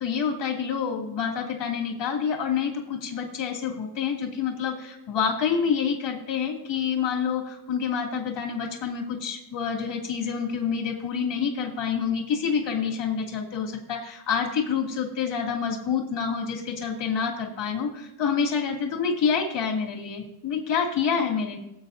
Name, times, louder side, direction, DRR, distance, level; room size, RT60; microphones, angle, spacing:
voice 1, 0.0-21.6, left 6 dB, 60° left, 0 dB, 2.7 m, -27 dB
19.5 x 8.8 x 2.7 m, 0.84 s
cardioid pair, 115°, 48 cm